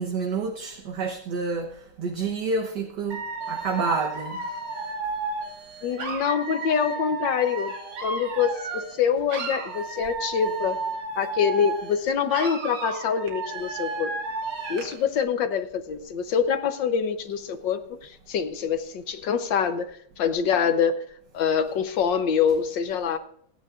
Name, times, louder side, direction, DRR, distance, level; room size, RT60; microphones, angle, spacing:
voice 1, 0.0-1.7 2.0-3.2 3.5-4.4, right 4 dB, 60° right, 3 dB, 1.5 m, -28 dB
Dog / Alarm, 3.1-9.0 9.3-12.0 12.3-15.0, right 4 dB, 80° right, 2.8 m, -33 dB
voice 2, 5.8-7.7 8.0-10.8 11.2-14.2 14.7-19.9 20.2-21.0 21.3-23.2, left 7 dB, 65° left, 9 dB, 1.5 m, -25 dB
27.5 x 9.4 x 2.5 m, 0.66 s
omnidirectional pair, 2.3 m